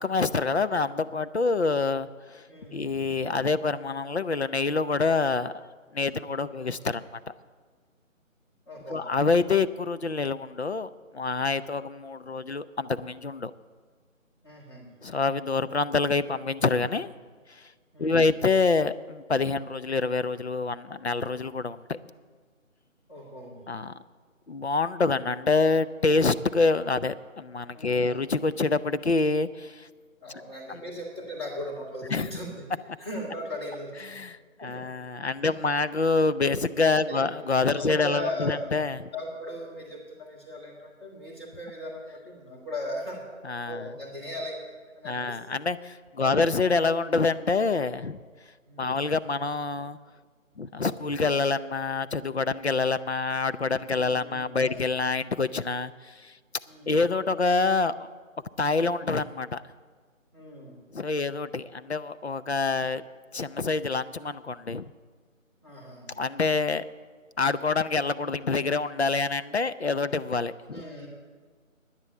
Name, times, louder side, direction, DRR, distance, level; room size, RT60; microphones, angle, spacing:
voice 1, 0.0-2.4 2.7-5.6 5.9-7.2 8.9-13.5 15.0-17.1 18.0-22.0 23.7-23.9 24.5-29.9 30.7-30.8 32.1-32.4 34.0-39.0 43.4-43.9 45.0-48.2 48.8-50.0 50.6-56.3 56.9-58.1 58.6-59.6 60.9-63.0 63.3-64.8 66.2-66.8 67.4-70.8, left 4 dB, 55° left, 13 dB, 0.6 m, -26 dB
voice 2, 2.5-2.9 8.7-9.1 14.4-14.9 17.9-18.3 23.1-23.6 27.7-28.2 30.2-32.7 33.0-34.2 34.6-34.9 35.4-35.7 37.0-37.2 37.7-38.6 39.1-43.2 43.7-44.6 45.0-45.4 46.2-46.4 48.7-49.0 53.9-55.0 56.6-57.0 60.3-60.8 65.6-66.1 70.7-71.1, left 1 dB, 20° left, -3 dB, 1.9 m, -38 dB
10.5 x 9.8 x 8.1 m, 1.5 s
figure-of-eight pair, 175°, 41 cm